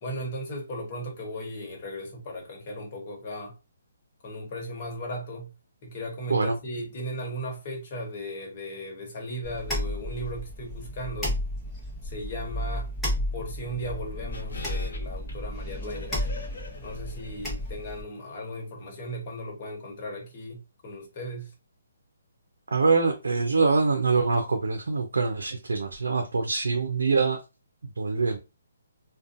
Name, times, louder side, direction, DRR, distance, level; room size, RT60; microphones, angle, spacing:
voice 1, 0.0-3.5 4.2-5.5 5.8-11.4 12.0-12.9 13.3-16.3 16.8-21.5, equal, 40° left, 1.1 m, -36 dB
sound 1, 9.4-18.0, left 1 dB, 5° left, 1.0 m, -33 dB
sound 2, 14.3-17.8 18.1-18.2, left 3 dB, 75° left, 0.7 m, -43 dB
voice 2, 22.7-27.4 28.0-28.4, right 4 dB, 85° right, 0.5 m, -24 dB
2.5 x 2.2 x 2.5 m
hypercardioid pair, 155°, 0 cm